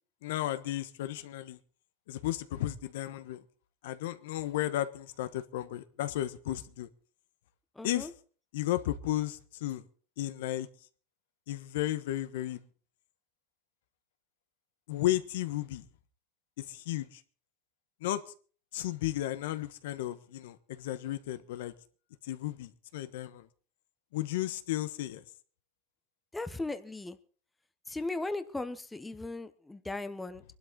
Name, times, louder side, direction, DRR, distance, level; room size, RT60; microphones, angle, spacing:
voice 1, 0.2-1.6 2.1-3.4 3.8-6.9 7.8-8.1 8.5-9.8 10.2-10.7 11.5-12.6 14.9-15.9 16.6-17.2 18.0-18.2 18.7-21.7 22.2-23.5 24.1-25.2, left 14 dB, 80° left, 1.4 m, -34 dB
voice 2, 7.8-8.1 26.3-27.2 27.9-30.4, left 2 dB, 5° left, 0.8 m, -37 dB
23.0 x 12.0 x 4.0 m
supercardioid pair, 165°, 0 cm